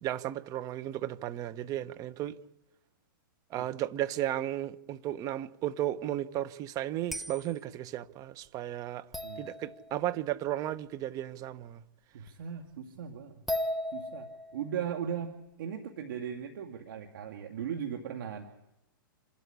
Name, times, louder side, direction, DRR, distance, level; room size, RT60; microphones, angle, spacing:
voice 1, 0.0-2.4 3.5-9.0 9.4-11.8, right 13 dB, 30° right, 1.0 m, -34 dB
sound 1, 7.1-7.5 9.1-10.2 12.3-12.4 13.5-14.7, left 1 dB, ahead, 0.9 m, -36 dB
voice 2, 12.1-13.4 13.9-15.3 15.6-18.4, right 8 dB, 65° right, 2.1 m, -38 dB
27.0 x 12.5 x 10.0 m
hypercardioid pair, 130°, 12 cm